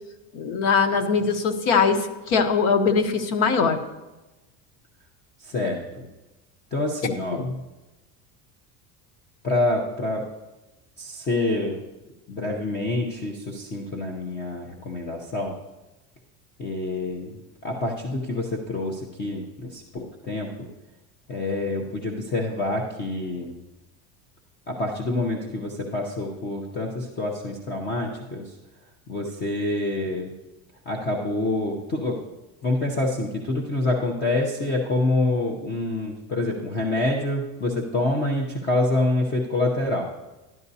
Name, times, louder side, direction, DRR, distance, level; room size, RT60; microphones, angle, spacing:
voice 1, 0.3-3.8 7.3-7.5, left 5 dB, 85° left, 7 dB, 1.1 m, -21 dB
voice 2, 5.4-6.1 6.7-7.4 9.4-10.3 11.0-11.8 12.3-15.6 16.6-20.7 21.3-23.5 24.7-28.5 29.1-30.3 30.9-32.2 32.6-40.1, left 2 dB, 25° left, 0 dB, 0.7 m, -27 dB
13.5 x 10.5 x 2.7 m, 1.1 s
cardioid pair, 170°, 40 cm